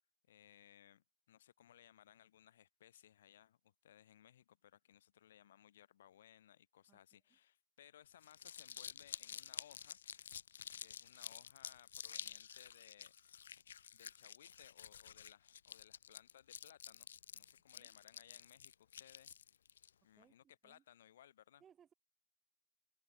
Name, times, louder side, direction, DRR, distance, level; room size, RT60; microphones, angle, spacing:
voice 1, 0.3-10.0 10.8-13.2 13.9-19.3 20.0-21.6, left 11 dB, 65° left, 2.9 m, -64 dB
voice 2, 6.9-7.2 17.7-17.9 20.2-20.4 20.6-20.8 21.6-21.9, right 8 dB, 15° right, 1.0 m, -67 dB
Crumpling crinkling, 8.1-19.9, left 8 dB, 80° left, 0.3 m, -51 dB
open air
hypercardioid pair, 160°, 0 cm